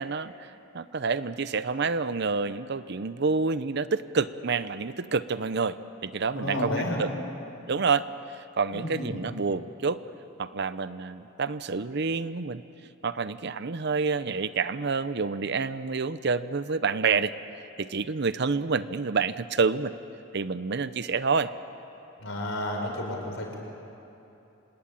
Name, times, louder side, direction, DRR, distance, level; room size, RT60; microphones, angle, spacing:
voice 1, 0.0-6.7 7.0-7.1 7.7-8.1 8.3-10.0 10.4-12.6 13.0-17.3 17.8-19.9 20.3-21.5, right 4 dB, 55° right, 14 dB, 0.7 m, -28 dB
voice 2, 6.4-7.0 8.7-9.2 22.2-23.6, left 1 dB, 70° left, 1 dB, 5.2 m, -31 dB
27.0 x 19.5 x 8.9 m, 2.9 s
head